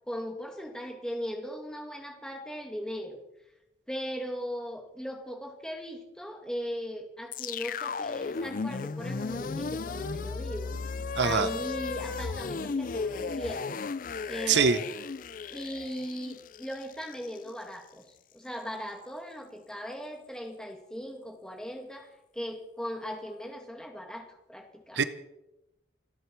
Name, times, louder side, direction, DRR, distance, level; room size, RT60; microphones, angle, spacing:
voice 1, 0.1-3.2 3.9-10.7 11.2-13.8 14.3-14.9 15.5-18.0 18.3-25.1, equal, 5° left, 2 dB, 2.3 m, -38 dB
sound 1, 7.3-17.5, left 4 dB, 45° left, 0.4 m, -35 dB
voice 2, 11.2-11.5 14.5-14.8 24.9-25.0, right 5 dB, 70° right, 12 dB, 0.8 m, -23 dB
29.5 x 9.8 x 4.7 m, 0.92 s
head